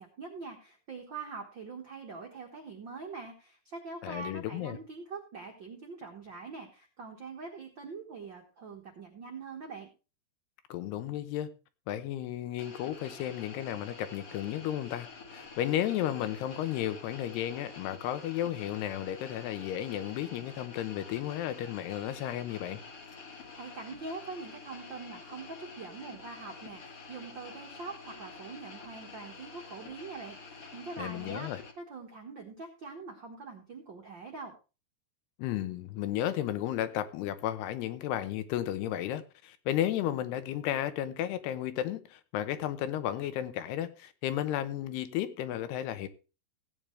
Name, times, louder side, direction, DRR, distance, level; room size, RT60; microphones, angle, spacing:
voice 1, 0.0-9.9 23.3-31.5 31.8-34.5, right 4 dB, 75° right, 1.0 m, -43 dB
voice 2, 4.0-4.8 10.7-11.5 11.9-22.8 31.0-31.6 35.4-46.1, left 12 dB, 85° left, 2.9 m, -33 dB
sound 1, 12.6-31.7, left 4 dB, 50° left, 1.8 m, -48 dB
16.0 x 9.0 x 3.3 m
omnidirectional pair, 4.6 m